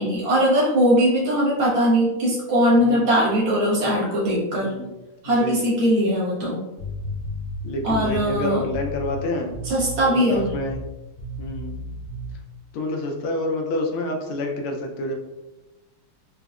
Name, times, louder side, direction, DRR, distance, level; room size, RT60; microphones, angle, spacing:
voice 1, 0.0-4.8 5.2-6.6 7.8-8.6 9.6-10.5, equal, 75° right, -6 dB, 2.1 m, -20 dB
voice 2, 2.8-3.2 4.6-4.9 5.2-5.6 7.6-9.5 10.1-10.8 11.4-11.8 12.7-15.1, left 1 dB, 80° left, 2 dB, 1.4 m, -28 dB
sound 1, 6.8-9.2 9.5-10.0 10.3-10.9 11.2-12.3, left 1 dB, 55° left, 1.6 m, -33 dB
4.8 x 2.0 x 2.3 m, 1.0 s
omnidirectional pair, 2.4 m